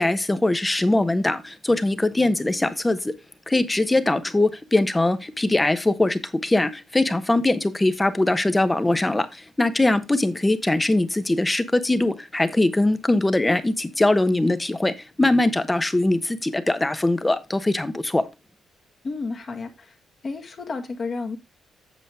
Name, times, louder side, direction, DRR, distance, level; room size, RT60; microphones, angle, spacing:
voice 1, 0.0-3.1 3.5-18.2, left 2 dB, 15° left, 1.0 m, -21 dB
voice 2, 19.0-20.0 20.2-21.4, left 4 dB, 45° left, 1.8 m, -31 dB
8.3 x 7.1 x 3.5 m
cardioid pair, 100°, 0 cm